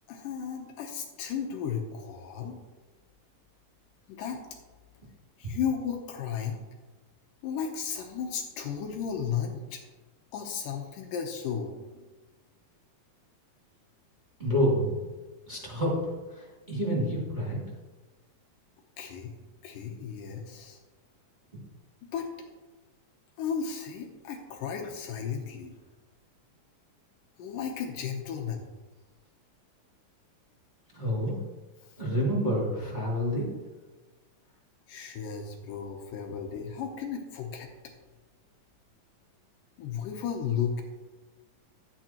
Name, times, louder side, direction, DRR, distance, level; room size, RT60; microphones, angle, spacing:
voice 1, 0.1-2.6 4.1-4.4 5.4-6.6 7.4-9.8 10.3-12.1 19.0-19.3 19.6-20.8 22.0-22.3 23.4-25.8 27.4-28.7 31.8-32.0 34.9-37.7 39.8-40.8, left 7 dB, 75° left, 2 dB, 2.4 m, -34 dB
voice 2, 14.4-15.0 15.5-17.6 30.9-31.4 32.0-33.6, equal, 15° right, -7 dB, 2.5 m, -28 dB
13.0 x 8.9 x 2.9 m, 1.2 s
omnidirectional pair, 4.1 m